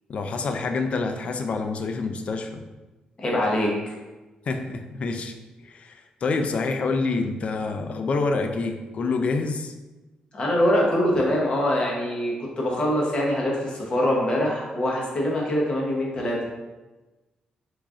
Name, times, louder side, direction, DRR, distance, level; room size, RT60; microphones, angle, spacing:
voice 1, 0.1-2.6 4.5-5.3 5.6-9.7, left 3 dB, 50° left, 6 dB, 0.3 m, -27 dB
voice 2, 3.2-3.9 10.3-16.5, left 1 dB, 35° left, -3 dB, 0.8 m, -24 dB
3.1 x 2.4 x 3.6 m, 1.2 s
cardioid pair, 115°, 3 cm